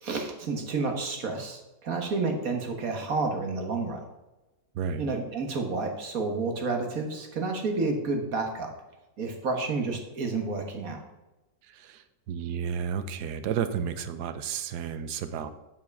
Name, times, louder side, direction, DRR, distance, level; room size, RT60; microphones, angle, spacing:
voice 1, 0.0-4.0 5.0-8.7 9.2-11.0, right 3 dB, 55° right, 4 dB, 1.8 m, -30 dB
voice 2, 11.7-15.5, right 7 dB, 70° right, 11 dB, 1.3 m, -32 dB
10.0 x 5.8 x 5.3 m, 1.0 s
omnidirectional pair, 1.9 m